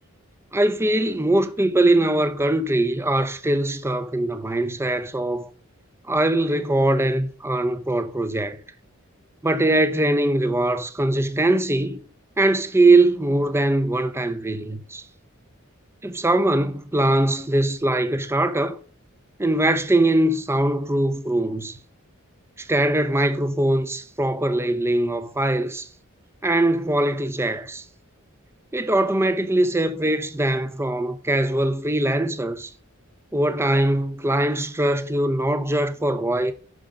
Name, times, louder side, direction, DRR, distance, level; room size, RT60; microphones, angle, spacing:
voice 1, 0.5-5.5 6.1-8.6 9.4-12.0 12.4-15.0 16.0-18.8 19.4-21.8 22.6-25.9 26.4-27.8 28.7-32.7 33.3-36.5, right 1 dB, 10° right, 0.7 m, -21 dB
11.5 x 5.0 x 5.2 m
head